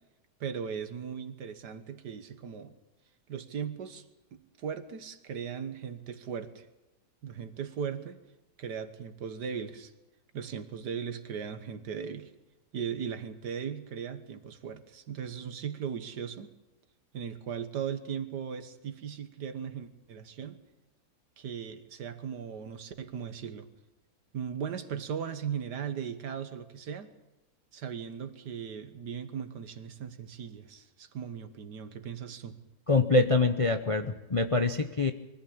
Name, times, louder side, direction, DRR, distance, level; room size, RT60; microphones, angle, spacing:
voice 1, 0.4-2.7 3.3-4.0 4.3-6.7 7.2-8.2 8.6-9.9 10.3-12.3 12.7-16.5 17.1-20.6 21.4-23.7 24.3-27.1 27.7-32.6, right 7 dB, 80° right, 9 dB, 1.9 m, -38 dB
voice 2, 32.9-35.1, left 3 dB, 35° left, 7 dB, 0.5 m, -25 dB
23.0 x 14.5 x 8.7 m, 1.0 s
omnidirectional pair, 1.8 m